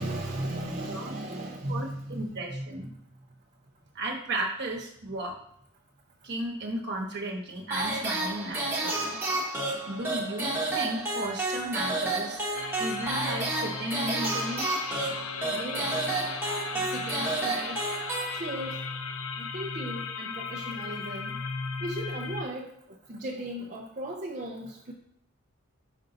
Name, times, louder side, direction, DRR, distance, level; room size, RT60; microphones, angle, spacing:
voice 1, 0.0-2.6 15.5-15.9 16.7-17.8 18.3-18.8 19.4-21.4 21.8-22.7 23.1-24.9, right 1 dB, 35° right, -2 dB, 0.6 m, -36 dB
voice 2, 1.7-2.9 3.9-5.3 6.2-9.2 9.9-12.4 12.8-14.7, right 1 dB, 50° right, 0 dB, 1.2 m, -34 dB
sound 1, 7.7-18.8, right 2 dB, 10° right, 1.1 m, -31 dB
sound 2, 12.5-22.4, left 5 dB, 65° left, 0.5 m, -36 dB
5.4 x 5.2 x 3.9 m, 0.69 s
head